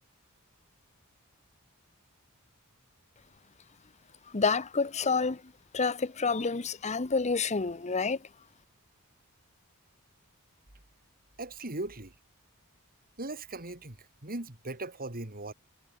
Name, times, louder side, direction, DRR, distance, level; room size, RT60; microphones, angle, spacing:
voice 1, 4.3-5.4 5.7-8.2, left 4 dB, 30° left, 0.8 m, -28 dB
voice 2, 11.4-12.1 13.2-14.0 14.2-15.5, right 2 dB, 40° right, 3.2 m, -38 dB
head